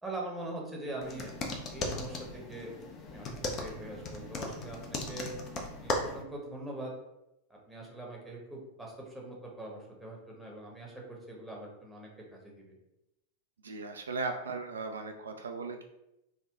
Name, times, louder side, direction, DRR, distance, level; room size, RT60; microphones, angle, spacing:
voice 1, 0.0-2.7 3.1-5.3 5.7-6.9 7.5-12.7, right 2 dB, 5° right, -2 dB, 0.9 m, -43 dB
sound 1, 1.0-6.2, left 2 dB, 30° left, 0.6 m, -37 dB
voice 2, 13.6-15.8, right 3 dB, 70° right, 4 dB, 0.3 m, -37 dB
3.4 x 2.2 x 3.6 m, 0.88 s
figure-of-eight pair, 90°, 0 cm